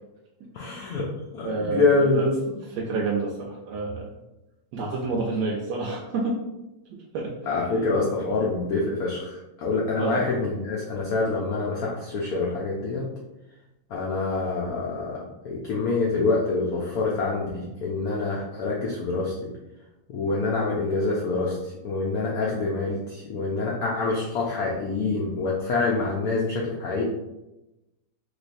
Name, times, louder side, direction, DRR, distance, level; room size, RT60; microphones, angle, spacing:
voice 1, 0.5-1.1 1.3-2.6 7.5-13.0 13.9-15.2 15.4-19.5 20.1-27.0, left 3 dB, 90° left, -3 dB, 0.8 m, -26 dB
voice 2, 1.4-1.9 2.1-2.3 2.8-4.1 4.7-6.4 7.1-7.3 7.7-7.9 10.0-10.3, right 3 dB, 75° right, -1 dB, 0.9 m, -28 dB
3.2 x 3.1 x 2.5 m, 0.96 s
omnidirectional pair, 2.2 m